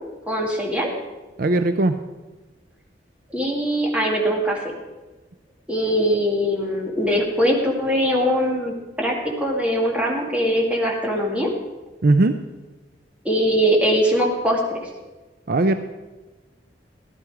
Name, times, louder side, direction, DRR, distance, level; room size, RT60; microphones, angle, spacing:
voice 1, 0.3-0.9 3.3-4.7 5.7-11.5 13.2-14.8, equal, 10° right, -2 dB, 2.2 m, -21 dB
voice 2, 1.4-2.0 12.0-12.4 15.5-15.8, right 2 dB, 55° right, 8 dB, 0.5 m, -18 dB
15.0 x 11.5 x 4.8 m, 1.2 s
head